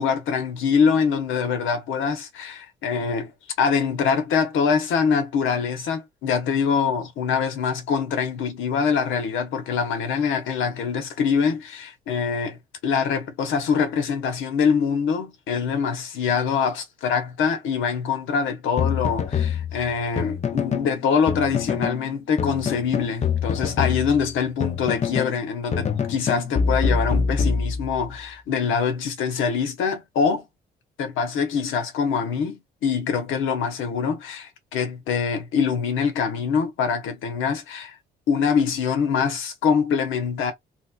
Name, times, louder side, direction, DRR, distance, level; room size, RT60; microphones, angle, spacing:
voice 1, 0.0-3.3 3.6-12.5 12.8-30.5 31.0-38.0 38.3-40.5, left 6 dB, 85° left, 1.0 m, -24 dB
sound 1, 18.8-20.9 21.3-22.0 22.4-25.4 25.7-28.1, left 6 dB, 35° left, 0.6 m, -25 dB
3.0 x 2.9 x 2.4 m
cardioid pair, 90°, 20 cm